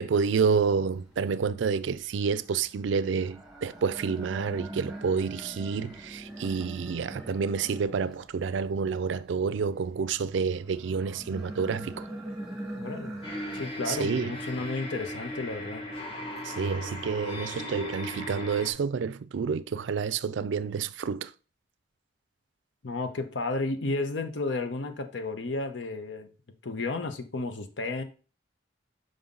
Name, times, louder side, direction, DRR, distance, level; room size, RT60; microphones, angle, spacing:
voice 1, 0.0-12.1 13.9-14.3 16.4-21.3, right 5 dB, 75° right, 0.4 m, -29 dB
sound 1, 0.6-18.8, right 1 dB, ahead, 1.7 m, -44 dB
voice 2, 12.7-13.2 13.5-15.9 22.8-26.3 26.6-28.0, left 3 dB, 75° left, 0.8 m, -32 dB
sound 2, 13.2-18.7, left 1 dB, 30° left, 1.0 m, -37 dB
5.5 x 5.1 x 3.8 m
head